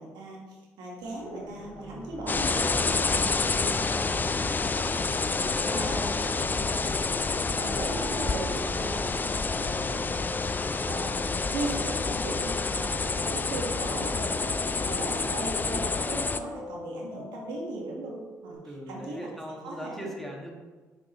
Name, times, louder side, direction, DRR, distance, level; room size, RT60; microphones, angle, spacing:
voice 1, 0.0-3.7 3.9-4.1 5.6-6.1 6.4-6.6 7.5-10.1 10.7-19.3 19.6-20.1, right 2 dB, 75° right, -2 dB, 1.4 m, -38 dB
sound 1, 1.0-18.6, left 2 dB, 55° left, 1.4 m, -44 dB
sound 2, 2.3-16.4, left 4 dB, 25° left, 0.4 m, -28 dB
voice 2, 3.7-4.2 5.2-6.0 6.4-6.5 18.6-20.5, equal, ahead, -1 dB, 1.7 m, -41 dB
sound 3, 5.5-5.9 6.2-7.8 8.1-8.5 8.8-10.6, left 2 dB, 80° left, 1.1 m, -52 dB
5.8 x 5.8 x 3.0 m, 1.3 s
supercardioid pair, 60°, 7 cm